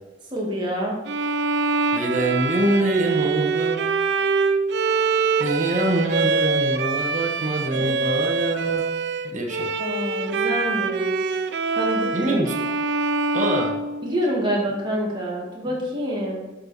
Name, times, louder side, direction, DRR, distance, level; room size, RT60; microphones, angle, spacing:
voice 1, 0.3-1.0 7.7-8.0 9.8-11.4 11.8-12.4 14.0-16.4, equal, 25° right, -3 dB, 2.0 m, -27 dB
Bowed string instrument, 1.1-14.5, right 4 dB, 60° right, 0.5 m, -24 dB
voice 2, 1.9-3.8 5.4-8.8 9.3-9.7 12.1-12.6 13.3-13.7, right 1 dB, 40° right, 1 dB, 1.2 m, -24 dB
7.6 x 6.6 x 4.3 m, 1.1 s
head